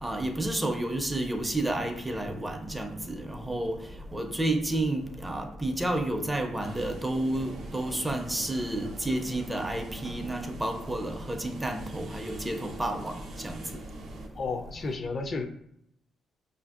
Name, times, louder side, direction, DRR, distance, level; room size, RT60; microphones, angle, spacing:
voice 1, 0.0-3.8 4.1-13.8, right 1 dB, 10° right, 0.5 m, -31 dB
sound 1, 6.6-14.3, right 1 dB, 65° right, 0.6 m, -44 dB
voice 2, 14.3-15.5, left 4 dB, 45° left, 0.4 m, -32 dB
5.1 x 2.5 x 2.4 m
cardioid pair, 90°, 0 cm